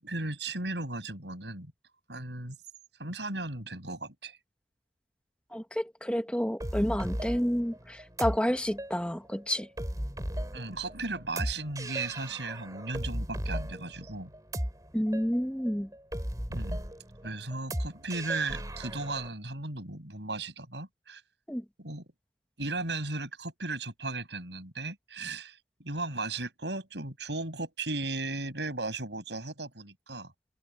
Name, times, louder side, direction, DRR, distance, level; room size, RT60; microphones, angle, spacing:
voice 1, 0.0-1.7 2.1-2.6 3.0-4.4 10.5-14.3 16.5-16.8 17.2-21.2 21.8-22.1 22.6-30.3, right 2 dB, 80° right, 7.8 m, -36 dB
voice 2, 5.5-9.7 14.9-15.9 21.5-21.6, equal, 5° left, 1.3 m, -30 dB
sound 1, 6.6-19.3, equal, 20° right, 3.3 m, -37 dB
open air
head